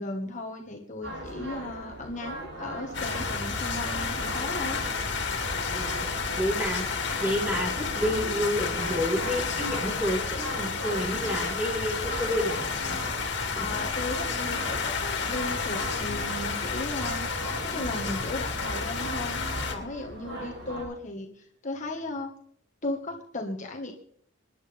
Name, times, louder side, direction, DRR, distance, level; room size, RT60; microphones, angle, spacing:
voice 1, 0.0-4.8 13.5-17.3 17.6-22.3 22.8-23.9, left 2 dB, 40° left, 1 dB, 1.7 m, -36 dB
sound 1, 1.0-20.8, right 1 dB, 80° right, 6.0 m, -39 dB
sound 2, 2.9-19.7, left 5 dB, 60° left, 2.7 m, -31 dB
voice 2, 5.6-12.6 12.9-13.0 13.5-13.7, equal, 5° right, 0 dB, 4.6 m, -30 dB
26.5 x 11.0 x 3.5 m, 0.65 s
head